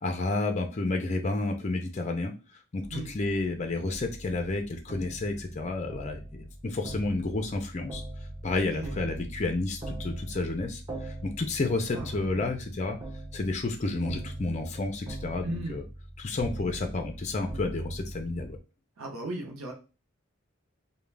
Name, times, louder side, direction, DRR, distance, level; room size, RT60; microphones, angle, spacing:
voice 1, 0.0-2.3 2.7-8.0 8.4-13.0 13.3-15.8 16.2-18.6, left 2 dB, 35° left, 4 dB, 0.4 m, -31 dB
sound 1, 2.8-18.6, right 1 dB, 20° right, 0.6 m, -41 dB
voice 2, 15.4-15.8 19.0-19.7, right 2 dB, 90° right, 1 dB, 0.7 m, -37 dB
2.4 x 2.1 x 3.2 m, 0.31 s
head